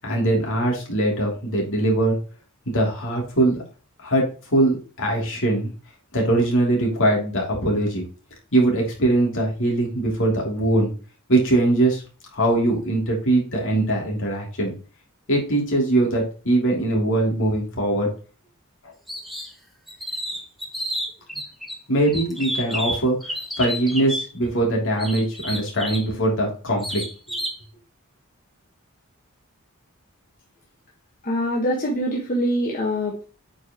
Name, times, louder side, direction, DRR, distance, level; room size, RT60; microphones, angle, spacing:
voice 1, 0.0-2.2 2.7-3.6 4.0-5.7 6.1-8.0 8.5-10.9 11.3-12.0 12.3-14.7 15.3-18.1 21.9-27.0, right 1 dB, 60° left, -1 dB, 3.0 m, -21 dB
sound 1, 19.1-19.5 19.9-21.8 22.1-24.3 25.0-26.1 26.8-27.6, equal, ahead, 1.2 m, -30 dB
voice 2, 31.2-33.2, equal, 40° left, -3 dB, 1.5 m, -24 dB
8.5 x 4.9 x 3.0 m, 0.36 s
head